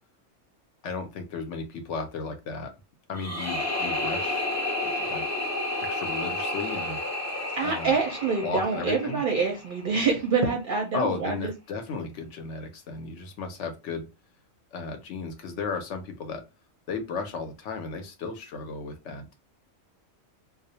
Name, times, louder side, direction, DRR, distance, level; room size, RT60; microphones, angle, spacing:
voice 1, 0.8-2.7 3.1-4.5 4.8-5.3 5.8-7.0 7.6-8.0 8.4-9.2 10.9-14.1 14.7-16.4 16.9-19.3, left 4 dB, 70° left, 5 dB, 0.8 m, -34 dB
sound 1, 3.1-10.1, left 1 dB, 20° left, 0.5 m, -31 dB
voice 2, 7.6-11.5, right 5 dB, 55° right, 1 dB, 0.6 m, -26 dB
2.3 x 2.0 x 2.7 m, 0.26 s
omnidirectional pair, 1.4 m